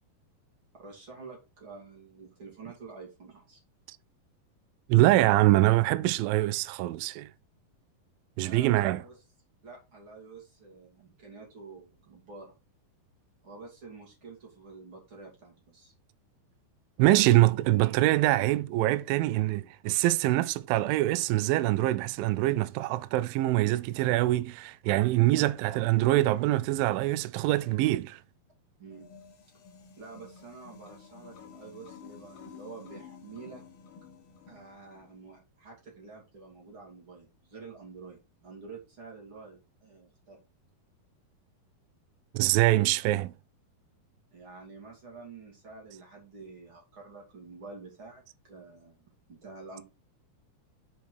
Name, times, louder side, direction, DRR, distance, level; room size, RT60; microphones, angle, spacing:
voice 1, 0.8-3.6 8.4-9.2 9.6-12.6 13.4-15.9 25.3-25.5 28.8-29.1 30.0-33.6 34.5-40.4 44.3-49.8, right 4 dB, 35° right, 3.0 m, -48 dB
voice 2, 4.9-7.3 8.4-9.0 17.0-28.2 42.3-43.3, right 16 dB, 80° right, 2.1 m, -24 dB
sound 1, 28.9-35.2, left 7 dB, 75° left, 1.2 m, -51 dB
6.5 x 5.1 x 4.6 m
omnidirectional pair, 4.4 m